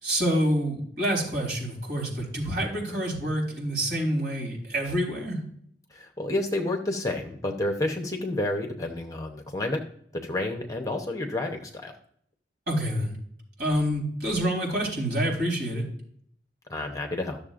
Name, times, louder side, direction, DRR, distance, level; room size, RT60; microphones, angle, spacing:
voice 1, 0.0-5.4 12.7-13.2 13.6-15.8, equal, 60° right, -2 dB, 3.7 m, -27 dB
voice 2, 5.9-9.8 10.1-11.9 16.7-17.4, left 1 dB, 20° left, 3 dB, 0.8 m, -30 dB
13.0 x 7.0 x 2.5 m, 0.64 s
head